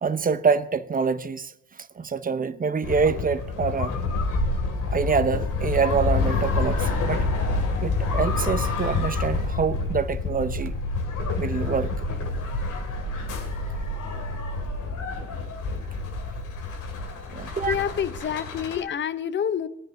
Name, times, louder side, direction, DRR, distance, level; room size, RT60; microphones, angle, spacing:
voice 1, 0.0-4.0 4.9-7.3 7.8-10.7 11.4-12.1 17.3-17.8, right 5 dB, 30° right, 0.7 m, -26 dB
sound 1, 2.8-18.8, left 4 dB, 80° left, 2.4 m, -28 dB
sound 2, 6.0-14.8, right 2 dB, 45° right, 1.2 m, -34 dB
voice 2, 17.7-19.7, left 8 dB, 40° left, 0.7 m, -27 dB
20.0 x 10.5 x 2.7 m
cardioid pair, 90°, 30 cm